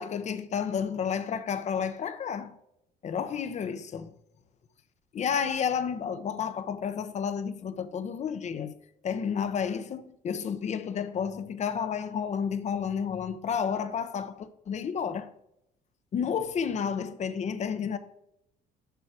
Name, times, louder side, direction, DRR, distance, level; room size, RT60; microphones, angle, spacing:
voice 1, 0.0-2.5 3.0-4.1 5.1-8.7 9.0-15.3 16.1-18.0, left 7 dB, 45° left, 0.7 m, -31 dB
6.8 x 5.7 x 4.8 m
cardioid pair, 110°, 17 cm